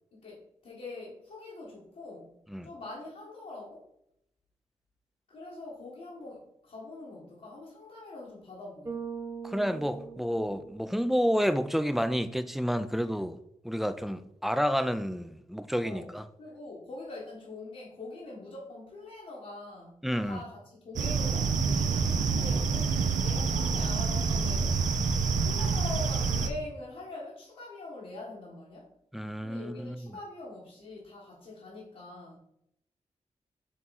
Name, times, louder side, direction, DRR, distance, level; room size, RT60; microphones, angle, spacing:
voice 1, 0.1-2.4 2.6-3.9 5.3-9.0 15.8-16.1 16.4-22.9 23.2-24.8 25.2-28.9 29.4-32.4, left 2 dB, 75° left, 1.7 m, -44 dB
Bass guitar, 8.8-11.2, right 6 dB, 25° right, 1.1 m, -41 dB
voice 2, 9.4-13.4 13.6-16.2 20.0-20.4 29.1-30.1, equal, ahead, 0.4 m, -30 dB
sound 1, 21.0-26.5, right 5 dB, 80° right, 0.6 m, -27 dB
6.8 x 3.6 x 4.2 m
wide cardioid pair, 95°, 13 cm